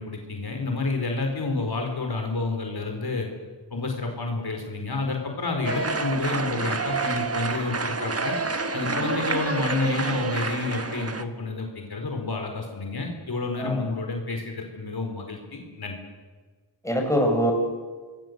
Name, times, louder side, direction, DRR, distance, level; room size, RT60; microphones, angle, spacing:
voice 1, 0.0-3.3 3.7-8.4 8.7-16.0, left 3 dB, 60° left, 3 dB, 4.6 m, -29 dB
sound 1, 5.6-11.2, right 4 dB, 35° right, 1.5 m, -28 dB
voice 2, 8.8-9.1 13.6-13.9 16.8-17.5, equal, 5° left, 1 dB, 6.2 m, -24 dB
27.5 x 20.5 x 8.1 m, 1.4 s
wide cardioid pair, 95°, 42 cm